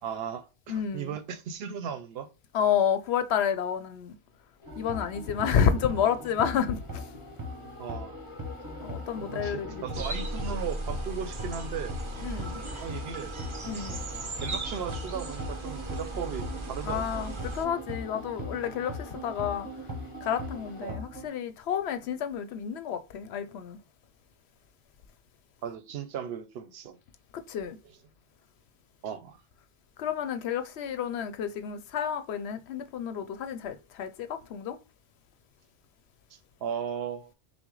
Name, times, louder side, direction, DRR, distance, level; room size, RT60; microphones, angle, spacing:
voice 1, 0.0-2.3 7.8-8.2 9.2-12.0 12.8-13.4 14.4-17.1 20.8-21.0 25.6-27.0 29.0-29.4 36.3-37.3, right 7 dB, 70° right, 0.8 m, -36 dB
voice 2, 0.7-1.2 2.5-4.2 4.8-7.2 8.8-10.0 12.2-12.6 13.7-14.0 16.8-19.7 20.2-23.8 27.3-27.8 30.0-34.8, left 8 dB, 75° left, 0.8 m, -30 dB
sound 1, 4.6-20.9, left 3 dB, 30° left, 0.8 m, -48 dB
sound 2, 4.6-21.3, left 1 dB, 20° right, 0.9 m, -40 dB
sound 3, 9.9-17.7, right 2 dB, 35° right, 0.5 m, -37 dB
5.9 x 2.1 x 3.7 m
omnidirectional pair, 1.1 m